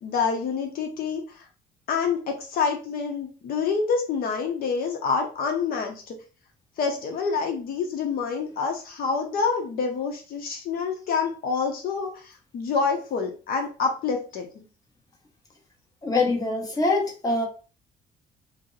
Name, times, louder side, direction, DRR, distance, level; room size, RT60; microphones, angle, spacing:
voice 1, 0.0-1.4 1.9-6.1 6.8-14.6, left 5 dB, 60° left, 2 dB, 0.6 m, -27 dB
voice 2, 16.0-17.5, left 3 dB, 20° left, 0 dB, 0.9 m, -24 dB
2.6 x 2.0 x 3.8 m, 0.36 s
cardioid pair, 110°, 17 cm